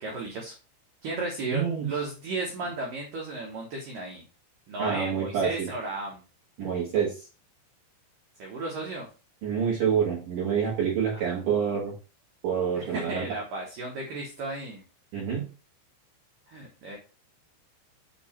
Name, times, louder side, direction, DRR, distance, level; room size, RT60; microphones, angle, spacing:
voice 1, 0.0-0.5 1.0-4.2 4.7-6.2 8.4-9.1 12.8-14.8 16.5-17.0, right 2 dB, 90° right, -1 dB, 1.9 m, -34 dB
voice 2, 1.5-1.9 4.8-5.7 6.6-7.2 9.4-11.9 12.4-13.3 15.1-15.5, right 7 dB, 60° right, -5 dB, 2.3 m, -27 dB
7.8 x 2.9 x 4.2 m, 0.33 s
omnidirectional pair, 5.7 m